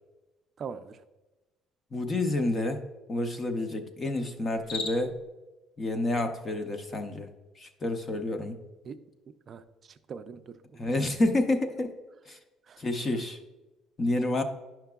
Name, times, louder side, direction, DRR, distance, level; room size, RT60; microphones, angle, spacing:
voice 1, 0.6-1.0 8.8-9.0 9.5-10.8 12.7-12.8, right 6 dB, 30° right, 10 dB, 0.4 m, -42 dB
voice 2, 1.9-2.8 3.1-5.1 5.8-7.3 7.6-8.6 10.8-11.9 12.3-12.4 12.8-13.4 14.0-14.4, left 2 dB, 20° left, 7 dB, 0.5 m, -29 dB
Cricket, 4.5-5.3, left 3 dB, 60° left, 0.8 m, -37 dB
10.0 x 5.7 x 2.3 m, 1.1 s
cardioid pair, 170°, 0 cm